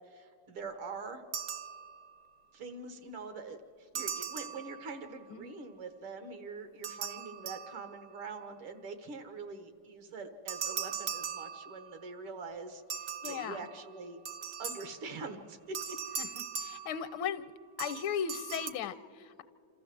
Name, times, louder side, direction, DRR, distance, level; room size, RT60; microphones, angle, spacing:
voice 1, 0.1-1.2 2.5-14.2 14.6-16.0, right 4 dB, 80° right, 8 dB, 2.3 m, -44 dB
sound 1, 1.3-2.3 3.9-5.2 6.8-8.2 10.5-12.1 12.9-15.2 15.7-17.4 17.8-18.7, right 7 dB, 65° right, 1.1 m, -40 dB
voice 2, 13.2-13.6 16.2-17.5 17.8-19.4, left 8 dB, 75° left, 13 dB, 1.4 m, -37 dB
27.0 x 14.0 x 7.6 m, 2.6 s
omnidirectional pair, 2.3 m